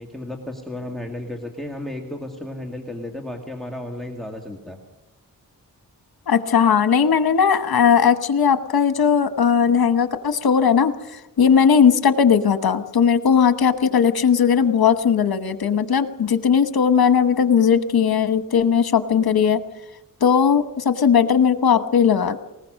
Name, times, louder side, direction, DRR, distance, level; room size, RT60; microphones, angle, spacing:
voice 1, 0.0-4.8, left 1 dB, ahead, 2 dB, 2.0 m, -33 dB
voice 2, 6.3-10.9 11.4-19.6 20.2-22.4, left 7 dB, 85° left, 10 dB, 1.2 m, -18 dB
20.5 x 19.5 x 6.5 m, 1.0 s
wide cardioid pair, 105°, 36 cm